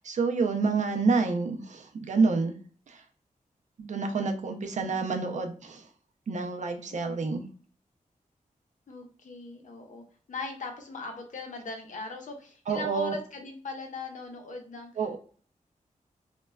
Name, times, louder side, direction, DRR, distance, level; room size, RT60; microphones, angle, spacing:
voice 1, 0.0-2.5 2.9-3.0 3.8-5.8 6.3-7.4 12.7-13.1 15.0-15.2, right 4 dB, 60° right, 4 dB, 0.4 m, -28 dB
voice 2, 8.9-14.9, left 3 dB, 65° left, 3 dB, 0.6 m, -40 dB
3.1 x 2.2 x 2.2 m, 0.43 s
wide cardioid pair, 130°, 14 cm